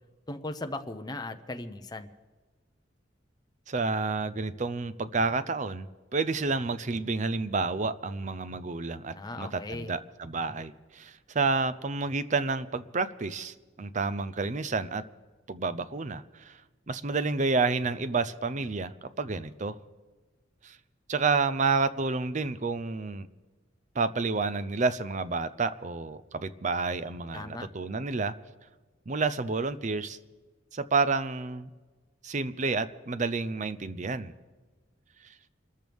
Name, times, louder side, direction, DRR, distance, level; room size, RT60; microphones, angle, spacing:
voice 1, 0.3-2.1 9.1-9.9 27.3-27.7, left 2 dB, 20° left, 6 dB, 0.9 m, -37 dB
voice 2, 3.7-15.0 15.5-16.6 16.9-19.8 20.6-20.8 21.1-23.3 23.9-28.3 29.1-30.2 30.7-31.7 32.2-34.3, right 4 dB, 40° right, 14 dB, 0.6 m, -30 dB
26.5 x 14.0 x 3.6 m, 1.3 s
head